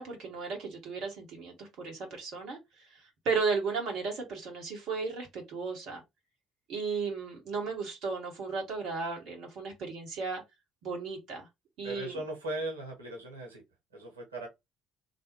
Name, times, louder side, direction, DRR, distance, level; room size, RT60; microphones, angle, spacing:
voice 1, 0.0-6.0 6.7-10.4 10.8-11.5 11.8-12.2, right 4 dB, 55° right, 0.9 m, -35 dB
voice 2, 11.8-13.6 13.9-14.5, right 1 dB, 80° right, 1.0 m, -38 dB
3.3 x 2.4 x 2.9 m
figure-of-eight pair, 50°, 0 cm